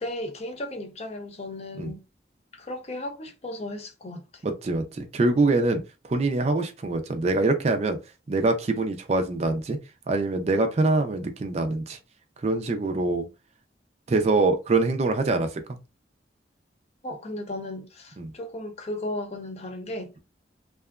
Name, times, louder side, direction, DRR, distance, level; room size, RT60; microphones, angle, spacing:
voice 1, 0.0-2.0 2.5-4.4 17.0-20.2, left 1 dB, 35° left, 0.5 m, -35 dB
voice 2, 4.4-8.0 8.3-9.8 10.1-12.0 12.4-13.3 14.1-15.6 18.2-18.3, right 2 dB, 35° right, 0.4 m, -24 dB
2.8 x 2.2 x 2.3 m
head